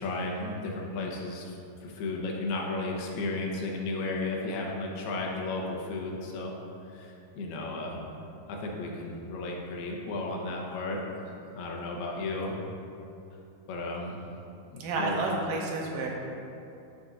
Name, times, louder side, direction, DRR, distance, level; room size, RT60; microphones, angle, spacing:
voice 1, 0.0-6.5 6.9-8.0 8.5-11.0 11.5-12.5 13.7-14.2 14.7-15.4, left 2 dB, 90° left, -1 dB, 3.0 m, -34 dB
voice 2, 14.8-16.1, right 3 dB, 75° right, -2 dB, 2.4 m, -30 dB
14.0 x 6.1 x 2.6 m, 2.7 s
omnidirectional pair, 4.4 m